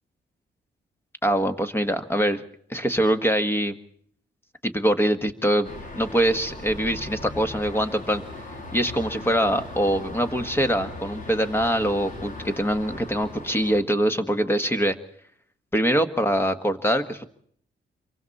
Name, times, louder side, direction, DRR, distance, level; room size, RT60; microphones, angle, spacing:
voice 1, 1.2-2.4 2.7-3.7 4.6-8.2 8.7-15.0 15.7-17.2, equal, 10° left, 8 dB, 1.6 m, -23 dB
sound 1, 5.6-13.8, left 2 dB, 45° left, 3.3 m, -38 dB
27.0 x 23.5 x 4.2 m, 0.63 s
cardioid pair, 115°, 19 cm